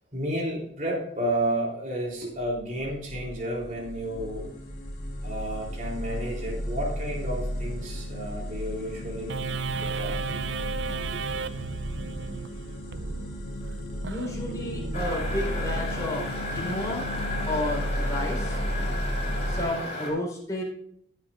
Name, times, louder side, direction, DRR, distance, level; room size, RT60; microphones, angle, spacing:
voice 1, 0.1-4.5 5.2-9.4 9.8-10.4 11.1-11.2 14.5-14.6 16.2-16.3 16.5-16.6, right 1 dB, 40° right, -2 dB, 3.5 m, -32 dB
sound 1, 2.5-19.6, equal, 50° left, 3.7 m, -34 dB
sound 2, 9.3-16.1, right 5 dB, 70° right, 0.5 m, -35 dB
voice 2, 14.0-17.0 17.5-18.6 19.5-20.6, left 1 dB, 15° left, -3 dB, 4.2 m, -32 dB
sound 3, 14.9-20.1, left 1 dB, 35° left, 4.2 m, -34 dB
16.5 x 8.1 x 2.5 m, 0.72 s
head